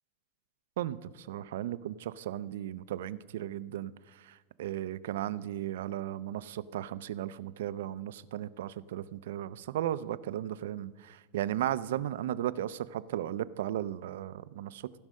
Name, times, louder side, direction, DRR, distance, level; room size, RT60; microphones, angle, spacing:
voice 1, 0.8-3.9 4.2-15.0, right 12 dB, 80° right, 17 dB, 0.4 m, -35 dB
15.0 x 5.5 x 6.3 m, 1.3 s
supercardioid pair, 175°, 0 cm